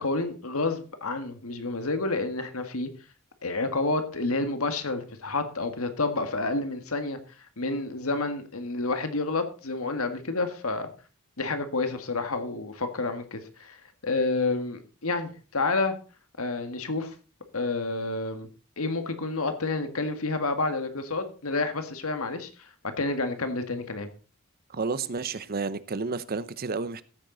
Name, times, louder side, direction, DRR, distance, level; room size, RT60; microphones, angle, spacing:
voice 1, 0.0-2.9 3.4-7.2 7.6-10.9 11.4-15.9 16.4-17.1 17.5-18.5 18.8-24.1, left 3 dB, 70° left, 1.7 m, -29 dB
voice 2, 24.7-27.0, right 4 dB, 45° right, 0.7 m, -31 dB
14.5 x 9.0 x 3.9 m
head